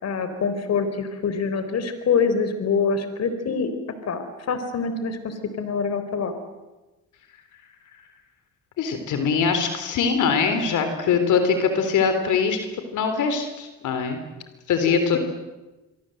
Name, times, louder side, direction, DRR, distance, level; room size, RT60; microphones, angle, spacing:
voice 1, 0.0-3.7 4.0-6.3 14.9-15.2, left 5 dB, 60° left, 9 dB, 3.9 m, -25 dB
voice 2, 8.8-12.7 12.9-14.2 14.7-15.2, left 6 dB, 80° left, 7 dB, 3.7 m, -22 dB
27.0 x 24.0 x 7.9 m, 1.1 s
cardioid pair, 90°, 30 cm